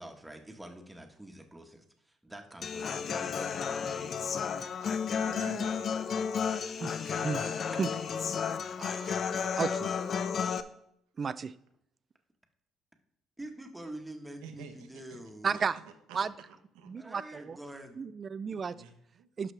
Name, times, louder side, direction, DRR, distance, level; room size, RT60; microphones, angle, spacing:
voice 1, 0.0-5.4 13.4-15.6 16.9-18.0, right 1 dB, 10° right, 3 dB, 1.4 m, -47 dB
Human voice / Acoustic guitar, 2.6-10.6, left 6 dB, 50° left, 0.5 m, -32 dB
voice 2, 4.9-5.9 14.4-15.2 15.4-16.3 16.7-16.9 17.2-17.3 18.7-19.3, right 7 dB, 90° right, 6 dB, 1.0 m, -49 dB
voice 3, 6.7-7.9 8.8-9.3 9.6-9.9 11.2-11.5 15.4-15.8 16.1-16.3 16.9-17.6 18.0-18.8 19.4-19.5, right 5 dB, 40° right, 16 dB, 0.4 m, -33 dB
11.0 x 6.0 x 3.4 m, 0.73 s
supercardioid pair, 80°, 0 cm